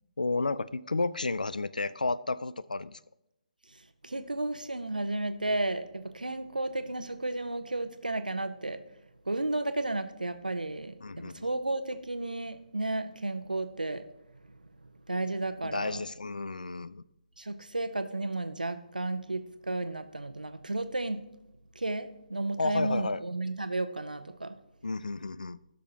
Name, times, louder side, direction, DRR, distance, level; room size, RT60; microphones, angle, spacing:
voice 1, 0.2-3.0 11.0-11.5 15.6-17.0 22.6-23.2 24.8-25.6, left 3 dB, 80° left, 17 dB, 0.4 m, -32 dB
voice 2, 4.0-8.8 9.3-14.0 15.1-16.0 17.4-21.2 21.8-24.5, right 2 dB, 85° right, 9 dB, 0.8 m, -33 dB
17.0 x 6.2 x 2.9 m, 0.89 s
figure-of-eight pair, 135°, 4 cm